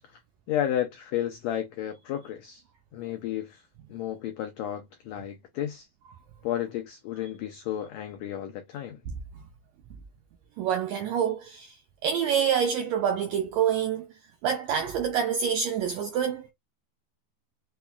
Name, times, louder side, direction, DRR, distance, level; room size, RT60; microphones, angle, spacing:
voice 1, 0.5-2.6 2.9-5.9 6.4-9.0, left 11 dB, 90° left, 1.5 m, -32 dB
voice 2, 10.6-11.8 12.0-14.1 14.4-16.5, right 8 dB, 85° right, 1.6 m, -26 dB
5.7 x 2.3 x 2.2 m
omnidirectional pair, 3.7 m